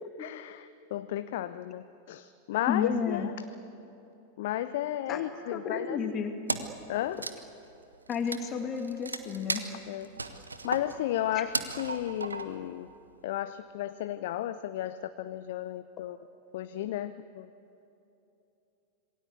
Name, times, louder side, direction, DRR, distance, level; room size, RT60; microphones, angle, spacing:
voice 1, 0.2-3.5 4.4-6.0 6.9-7.3 9.9-10.1 10.6-12.9 13.2-16.2 16.5-17.5, left 12 dB, 55° left, 12 dB, 0.7 m, -33 dB
voice 2, 2.7-3.3 5.1-5.3 5.5-6.3 8.1-9.6 11.3-11.4, left 6 dB, 30° left, 5 dB, 2.2 m, -31 dB
Wood, 6.5-6.8 7.1-12.7, right 3 dB, 80° right, 1.3 m, -36 dB
27.0 x 21.5 x 8.3 m, 2.9 s
figure-of-eight pair, 90°, 0 cm